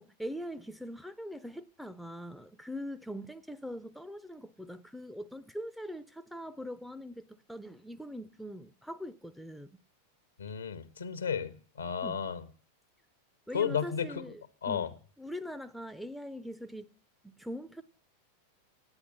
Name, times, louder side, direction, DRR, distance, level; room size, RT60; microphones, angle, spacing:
voice 1, 0.0-9.7 12.0-12.2 13.5-14.9 15.2-16.9 17.2-17.8, equal, ahead, 0.5 m, -42 dB
voice 2, 10.4-12.5 13.5-14.3 14.6-14.9, left 7 dB, 70° left, 0.9 m, -33 dB
9.8 x 8.5 x 7.2 m
figure-of-eight pair, 90°, 0 cm